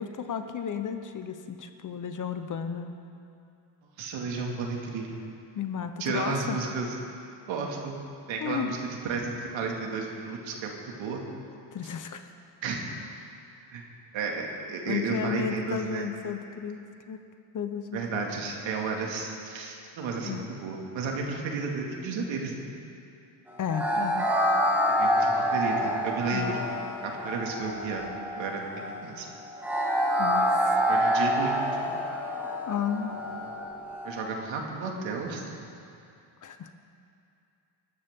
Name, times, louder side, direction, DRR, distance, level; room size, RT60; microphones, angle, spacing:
voice 1, 0.0-2.9 5.5-6.6 8.4-8.7 11.7-12.2 14.9-16.8 17.1-17.2 17.5-18.3 20.2-20.4 23.6-24.3 26.3-26.5 30.2-30.8 32.7-33.2 36.4-36.7, left 7 dB, 40° left, 8 dB, 1.0 m, -33 dB
voice 2, 4.0-5.2 6.0-6.9 7.5-8.0 8.3-8.8 9.0-11.2 12.6-12.9 13.7-13.9 14.1-16.1 17.9-22.7 24.9-26.6 27.0-29.3 30.9-31.9 34.0-35.5, right 4 dB, 75° right, 0 dB, 2.4 m, -33 dB
sound 1, 23.7-34.2, equal, 5° right, 2.4 m, -27 dB
21.0 x 12.5 x 3.8 m, 2.6 s
cardioid pair, 100°, 47 cm